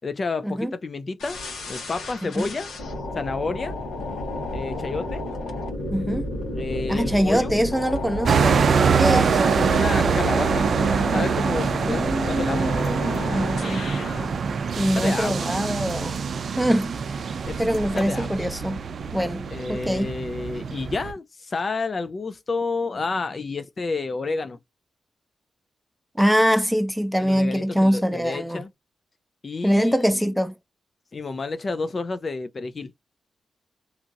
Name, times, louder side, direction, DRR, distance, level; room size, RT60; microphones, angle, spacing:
voice 1, 0.0-1.4 1.7-2.7 3.1-3.8 4.5-5.2 6.6-7.6 9.0-9.3 9.6-10.7 11.1-12.8 15.0-15.5 17.5-17.7 17.9-18.4 19.5-24.6 27.2-28.7 29.4-30.3 31.1-32.9, left 3 dB, 45° left, 0.3 m, -30 dB
sound 1, 1.2-14.3, left 1 dB, 90° left, 1.3 m, -32 dB
voice 2, 5.9-6.3 6.9-8.7 9.0-9.3 11.9-13.9 14.8-16.1 16.6-16.9 17.6-18.8 19.1-20.1 26.2-28.6 29.6-30.5, equal, ahead, 0.6 m, -23 dB
sound 2, 8.2-21.1, right 6 dB, 60° right, 0.4 m, -24 dB
2.8 x 2.4 x 2.7 m
cardioid pair, 80°, 0 cm